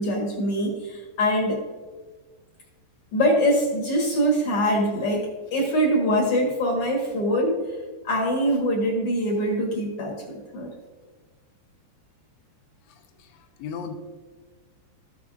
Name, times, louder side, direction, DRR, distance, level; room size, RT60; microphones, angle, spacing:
voice 1, 0.0-1.6 3.1-7.6 8.0-10.7, equal, 65° left, -2 dB, 1.5 m, -23 dB
voice 2, 12.9-14.0, left 6 dB, 90° left, 2 dB, 2.8 m, -37 dB
14.0 x 7.1 x 2.5 m, 1.4 s
omnidirectional pair, 4.8 m